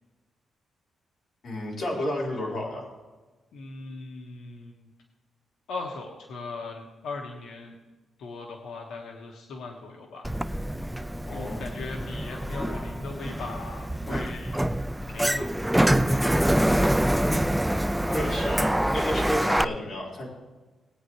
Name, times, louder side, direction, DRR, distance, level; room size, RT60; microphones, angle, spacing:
voice 1, 1.4-2.9 11.2-11.6 18.1-20.3, left 1 dB, 45° left, -4 dB, 4.5 m, -31 dB
voice 2, 3.5-4.9 5.7-7.8 8.2-10.3 11.3-14.6 15.1-16.5, left 3 dB, 85° left, 1 dB, 1.5 m, -39 dB
Sliding door, 10.2-19.6, right 1 dB, 5° right, 0.3 m, -25 dB
19.5 x 9.3 x 3.2 m, 1.2 s
cardioid pair, 145°, 0 cm